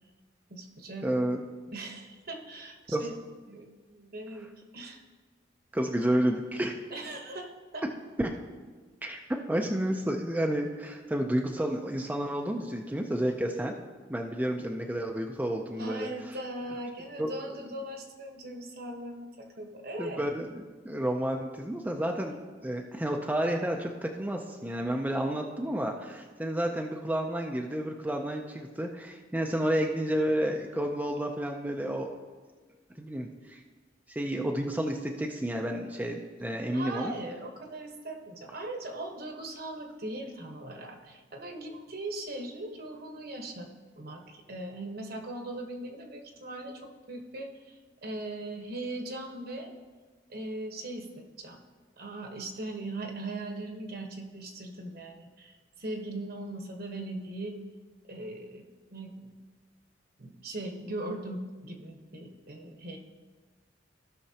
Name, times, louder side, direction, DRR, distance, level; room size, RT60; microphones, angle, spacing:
voice 1, 0.5-1.1 1.7-3.1 3.5-5.0 6.9-7.8 15.8-20.3 36.7-43.7 44.0-49.7 50.3-51.6 52.0-57.6 58.1-58.6 58.9-59.3 60.2-63.0, right 1 dB, 55° right, 3 dB, 1.1 m, -39 dB
voice 2, 1.0-1.4 2.9-3.0 5.7-6.7 8.2-8.3 9.0-9.2 9.5-13.7 14.1-16.4 17.2-17.3 20.0-22.4 22.6-32.1 33.0-33.6 34.2-37.1, right 1 dB, 10° right, 2 dB, 0.5 m, -30 dB
16.5 x 5.8 x 2.8 m, 1.4 s
head